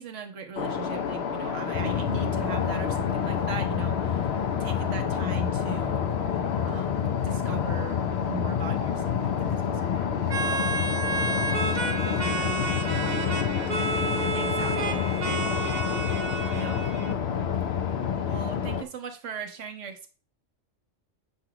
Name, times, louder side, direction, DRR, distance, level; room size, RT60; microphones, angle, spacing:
voice 1, 0.0-6.1 6.6-10.6 14.3-15.1 16.5-16.8 18.2-20.1, right 7 dB, 70° right, 5 dB, 1.3 m, -39 dB
sound 1, 0.6-18.8, left 6 dB, 60° left, 1.0 m, -31 dB
sound 2, 1.7-18.8, left 9 dB, 85° left, 0.3 m, -30 dB
sound 3, 10.3-17.1, right 4 dB, 45° right, 0.7 m, -31 dB
voice 2, 11.9-14.3 14.9-16.1 16.7-17.7, equal, 10° left, 3 dB, 0.7 m, -45 dB
7.9 x 3.0 x 5.8 m, 0.35 s
omnidirectional pair, 1.3 m